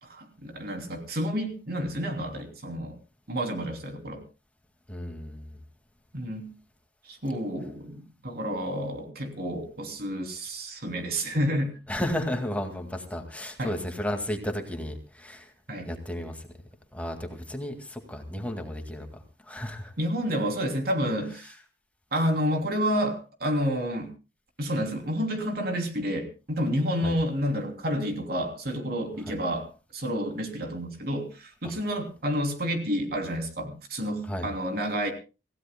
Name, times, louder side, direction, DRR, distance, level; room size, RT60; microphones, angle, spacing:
voice 1, 0.0-2.9 3.3-4.2 6.1-6.5 7.1-11.8 13.6-13.7 15.7-15.9 20.0-21.5 22.1-24.1 24.6-29.7 29.9-35.1, equal, 60° right, 4 dB, 3.0 m, -29 dB
voice 2, 4.9-5.6 11.9-15.5 15.8-16.5 16.9-19.1 19.4-19.9 27.0-27.2 34.3-34.5, left 1 dB, 10° left, 4 dB, 2.0 m, -33 dB
27.0 x 16.0 x 2.2 m, 0.31 s
head